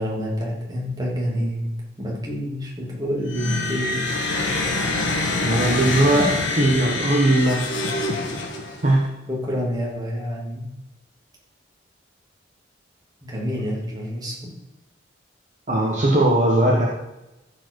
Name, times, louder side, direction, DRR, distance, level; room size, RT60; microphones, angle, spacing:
voice 1, 0.0-1.7 2.0-4.0 5.4-5.6 9.3-10.6 13.2-14.5, equal, 20° right, -4 dB, 2.8 m, -28 dB
sound 1, 3.3-8.9, left 2 dB, 85° left, 1.6 m, -25 dB
voice 2, 5.4-7.7 8.8-9.1 15.7-16.8, right 1 dB, 40° right, -3 dB, 1.4 m, -19 dB
14.0 x 4.9 x 4.8 m, 0.96 s
head